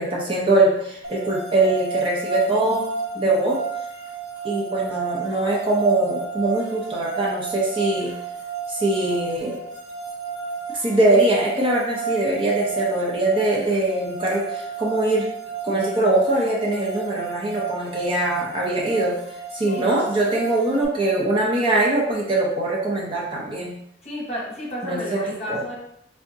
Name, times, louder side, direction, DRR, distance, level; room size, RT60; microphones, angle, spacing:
voice 1, 0.0-2.8 3.1-3.6 4.4-8.1 8.7-9.6 10.7-15.3 15.6-19.2 19.5-23.7 24.8-25.2 25.5-25.6, right 2 dB, 30° right, -4 dB, 0.7 m, -22 dB
sound 1, 1.0-20.8, right 5 dB, 80° right, 0.9 m, -32 dB
voice 2, 24.0-25.7, equal, 35° left, -5 dB, 1.1 m, -31 dB
3.5 x 2.8 x 2.6 m, 0.73 s
head